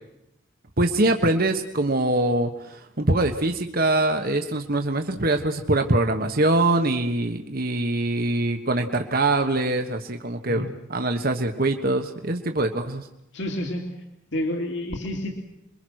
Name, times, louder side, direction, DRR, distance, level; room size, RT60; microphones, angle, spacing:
voice 1, 0.8-13.1, right 2 dB, 45° right, 5 dB, 1.3 m, -23 dB
voice 2, 13.3-13.9 14.3-15.4, left 1 dB, 55° left, 3 dB, 2.9 m, -29 dB
27.5 x 23.0 x 6.4 m, 0.86 s
head